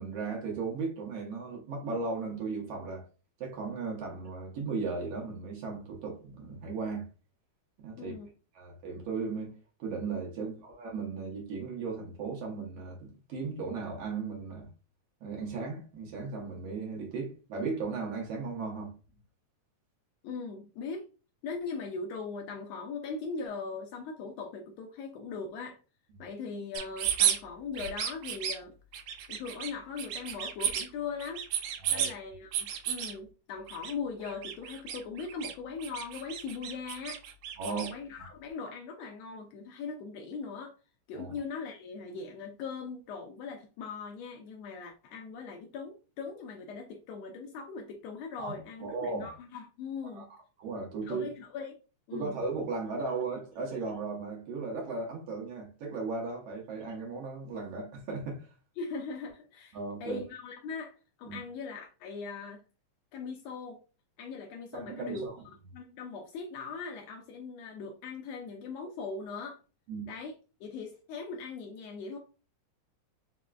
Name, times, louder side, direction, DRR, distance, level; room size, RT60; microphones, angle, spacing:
voice 1, 0.0-3.1 3.4-7.1 7.8-8.1 8.5-9.5 9.8-14.7 15.2-18.9 31.8-32.1 37.6-37.9 41.1-41.3 48.4-48.5 48.8-49.3 50.1-51.3 52.1-58.5 59.7-60.2 61.3-61.4 64.7-65.4 69.9-70.0, right 4 dB, 65° right, 1.7 m, -36 dB
voice 2, 8.0-8.3 20.2-21.1 21.4-25.8 26.2-28.7 29.3-31.4 31.9-37.2 37.6-40.7 41.1-50.3 51.0-51.7 52.1-52.4 58.8-62.6 63.1-63.8 64.2-65.3 65.7-69.6 70.1-70.3 70.6-72.2, left 5 dB, 75° left, 1.6 m, -40 dB
sound 1, 26.7-27.4 27.7-28.6 28.9-29.7 30.0-30.9 31.2-32.1 32.5-33.1 33.7-33.9 34.2-35.5 35.8-37.9, right 9 dB, 80° right, 2.1 m, -32 dB
4.9 x 3.5 x 2.3 m
omnidirectional pair, 3.4 m